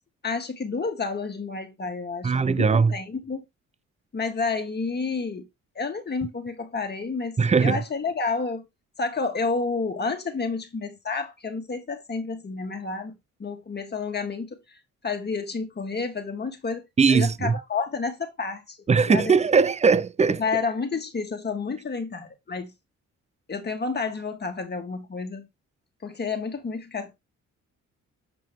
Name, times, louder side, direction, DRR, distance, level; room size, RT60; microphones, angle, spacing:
voice 1, 0.2-3.5 4.1-5.5 5.8-8.7 9.0-18.8 19.1-19.3 20.4-22.7 23.5-25.5 26.0-27.1, left 4 dB, 35° left, 2.0 m, -30 dB
voice 2, 2.2-2.9 7.4-7.8 17.0-17.5 18.9-20.4, right 5 dB, 20° right, 0.6 m, -20 dB
7.7 x 5.1 x 3.6 m
cardioid pair, 90°, 30 cm